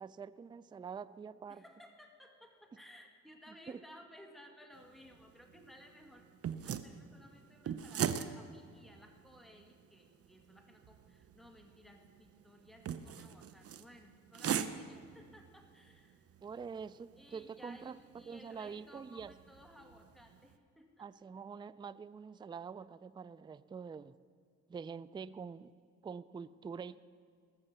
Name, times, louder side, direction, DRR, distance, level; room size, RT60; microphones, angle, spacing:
voice 1, 0.0-1.6 3.7-3.8 16.4-18.0 18.3-19.3 21.0-24.1 24.7-25.7 26.0-27.0, right 6 dB, 15° right, 17 dB, 0.3 m, -45 dB
voice 2, 1.5-6.3 6.6-16.3 17.2-21.1, equal, ahead, 3 dB, 1.9 m, -58 dB
sound 1, 4.7-20.5, right 8 dB, 50° right, 0.8 m, -43 dB
20.0 x 7.1 x 6.7 m, 2.1 s
cardioid pair, 90°, 30 cm